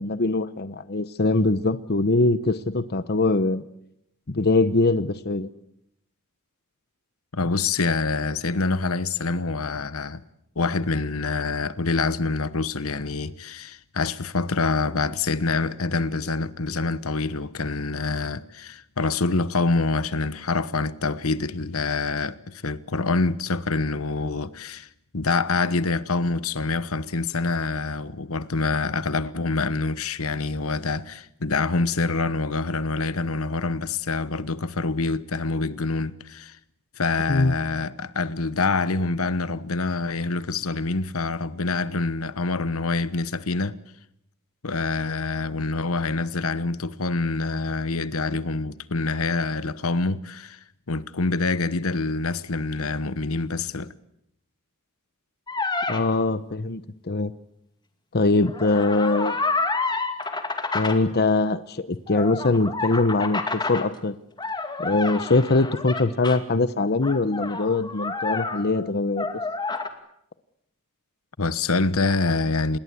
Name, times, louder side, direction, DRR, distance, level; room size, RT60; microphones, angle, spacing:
voice 1, 0.0-3.6 4.3-5.5 37.3-37.5 55.9-57.3 58.1-59.4 60.7-64.1 64.8-69.3, left 2 dB, 50° left, 0.9 m, -22 dB
voice 2, 7.3-10.2 10.6-24.9 25.1-36.6 37.0-43.8 44.6-50.6 50.9-53.9 71.4-72.8, left 3 dB, 70° left, 1.1 m, -26 dB
sound 1, 55.5-56.0 58.4-61.0 62.1-63.8 64.4-66.4 67.0-68.9 69.2-69.9, left 3 dB, 20° left, 2.4 m, -29 dB
27.0 x 21.0 x 8.4 m
head